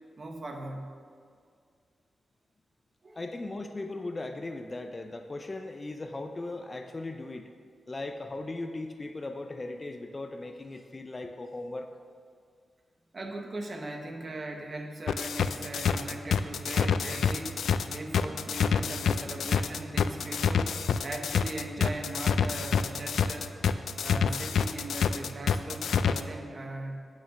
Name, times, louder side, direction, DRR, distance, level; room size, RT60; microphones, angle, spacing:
voice 1, 0.2-0.9 3.0-3.2 13.1-17.6 17.9-23.5 24.0-27.0, right 2 dB, 35° right, 4 dB, 0.9 m, -39 dB
voice 2, 3.2-7.5 7.9-11.9, left 2 dB, 25° left, 6 dB, 0.4 m, -38 dB
sound 1, 15.1-26.2, left 7 dB, 90° left, 0.3 m, -27 dB
8.7 x 6.4 x 6.1 m, 2.1 s
wide cardioid pair, 140°, 0 cm